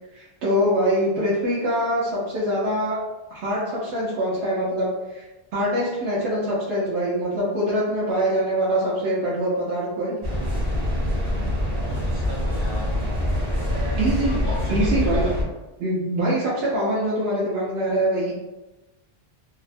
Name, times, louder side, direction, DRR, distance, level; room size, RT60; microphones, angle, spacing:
voice 1, 0.1-3.0 3.3-5.3 5.5-10.2 14.0-14.4 14.7-15.3 15.8-18.3, equal, 80° right, -7 dB, 0.9 m, -24 dB
sound 1, 10.2-15.4, left 1 dB, 35° right, 0.6 m, -25 dB
voice 2, 11.6-12.9 13.4-15.4, equal, 40° left, -6 dB, 0.4 m, -37 dB
2.7 x 2.0 x 2.5 m, 1.1 s
omnidirectional pair, 1.1 m